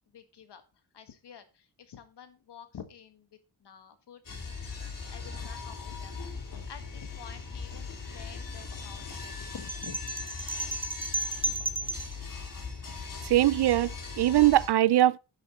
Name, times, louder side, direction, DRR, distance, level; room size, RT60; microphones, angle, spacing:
voice 1, 0.1-0.6 0.9-3.3 3.6-4.2 5.1-10.0, left 8 dB, 80° left, 1.7 m, -49 dB
sound 1, 4.2-14.7, left 4 dB, 55° left, 2.8 m, -39 dB
sound 2, 9.7-12.2, right 2 dB, 15° right, 1.0 m, -33 dB
voice 2, 13.3-15.2, right 14 dB, 75° right, 0.5 m, -22 dB
10.0 x 7.3 x 4.2 m
wide cardioid pair, 145°, 40 cm